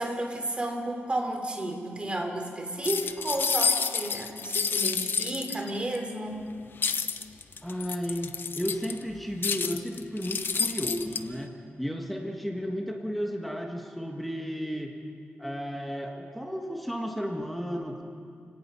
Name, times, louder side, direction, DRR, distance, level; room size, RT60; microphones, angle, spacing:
voice 1, 0.0-6.4 6.9-7.0, right 1 dB, 25° right, 3 dB, 3.1 m, -32 dB
sound 1, 2.8-6.0 6.8-9.0 9.4-11.2, left 5 dB, 55° left, 0.8 m, -29 dB
voice 2, 7.6-14.9 15.4-18.0, equal, ahead, 2 dB, 1.4 m, -33 dB
29.5 x 17.5 x 5.6 m, 2.5 s
wide cardioid pair, 120°, 4 cm